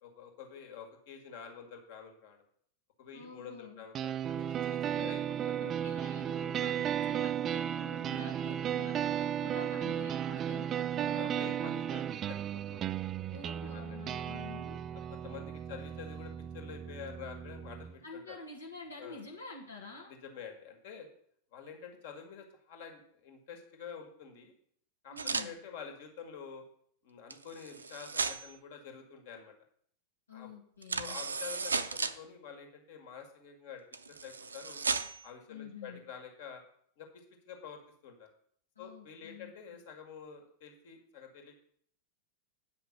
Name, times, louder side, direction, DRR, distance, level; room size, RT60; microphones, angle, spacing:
voice 1, 0.0-2.4 3.0-5.7 6.3-6.5 8.3-8.6 10.9-13.0 13.6-14.0 14.9-18.4 19.0-19.2 20.1-21.1 21.5-24.5 25.0-26.6 27.0-29.5 30.3-30.5 31.0-33.8 34.1-34.8 35.2-36.6 37.0-38.3 38.8-41.6, left 7 dB, 50° left, 3 dB, 2.0 m, -48 dB
voice 2, 3.1-3.8 4.9-11.8 13.3-14.8 18.0-20.1 25.1-25.6 30.3-31.2 35.5-36.0 38.7-39.5, left 3 dB, 75° left, -2 dB, 1.5 m, -48 dB
sound 1, 3.9-17.9, right 10 dB, 30° right, 0.3 m, -35 dB
sound 2, 25.2-25.5 27.3-28.6 30.8-32.2 33.9-35.3, right 4 dB, 75° right, 0.5 m, -35 dB
9.1 x 5.8 x 6.7 m, 0.64 s
figure-of-eight pair, 90°, 0 cm